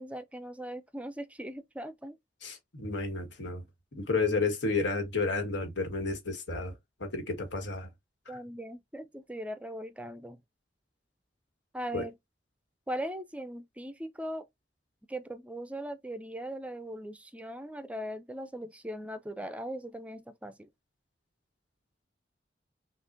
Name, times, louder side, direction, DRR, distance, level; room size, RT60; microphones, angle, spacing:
voice 1, 0.0-2.2 8.3-10.4 11.7-12.2 12.9-14.4 15.1-20.7, right 1 dB, 10° right, 0.4 m, -39 dB
voice 2, 2.4-3.6 3.9-6.7 7.0-7.9 11.9-12.0, left 3 dB, 90° left, 1.5 m, -31 dB
6.1 x 2.4 x 2.6 m
head